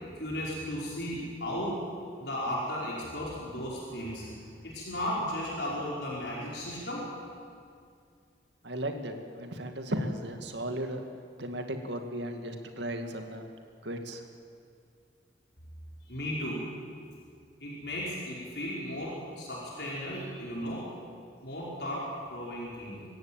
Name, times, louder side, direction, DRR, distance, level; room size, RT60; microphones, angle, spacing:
voice 1, 0.1-1.8 2.2-7.1 16.0-16.7 17.6-20.9 21.4-23.1, equal, 65° left, -5 dB, 5.3 m, -35 dB
voice 2, 8.6-11.0 11.4-13.4 13.8-14.2, right 1 dB, 70° right, 5 dB, 2.2 m, -35 dB
25.0 x 15.0 x 9.1 m, 2.2 s
head